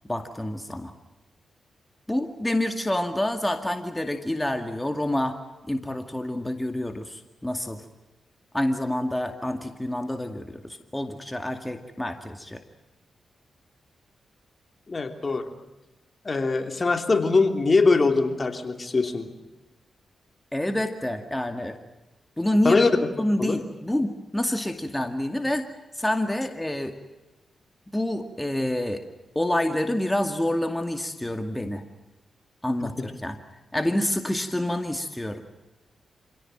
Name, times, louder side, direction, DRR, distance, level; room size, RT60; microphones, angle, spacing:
voice 1, 0.1-0.9 2.1-5.4 5.6-7.8 8.5-12.6 20.5-21.8 22.4-22.8 23.2-25.7 25.9-27.0 27.9-29.0 29.4-31.8 32.6-33.4 33.7-35.4, left 1 dB, 15° left, 7 dB, 2.2 m, -27 dB
voice 2, 14.9-15.5 16.2-19.3 22.6-22.9 23.4-23.6 32.8-32.9, left 3 dB, 45° left, 7 dB, 3.0 m, -22 dB
27.0 x 17.0 x 9.0 m, 1.1 s
supercardioid pair, 40°, 0 cm